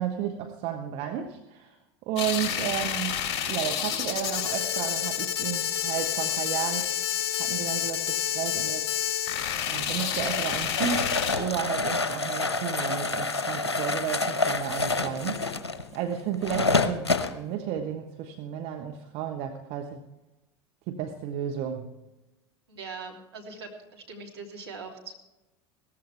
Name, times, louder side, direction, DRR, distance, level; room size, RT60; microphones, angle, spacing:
voice 1, 0.0-1.8 2.0-3.2 3.5-6.9 7.3-8.9 9.6-15.4 15.9-20.0 20.9-22.0, right 9 dB, 50° right, 5 dB, 1.2 m, -33 dB
sound 1, 2.2-11.3, left 10 dB, 50° left, 2.6 m, -29 dB
sound 2, 9.7-17.3, left 3 dB, 85° left, 1.0 m, -28 dB
voice 2, 22.7-25.1, right 4 dB, 75° right, 0 dB, 3.2 m, -42 dB
18.0 x 14.5 x 3.4 m, 1.0 s
figure-of-eight pair, 80°, 14 cm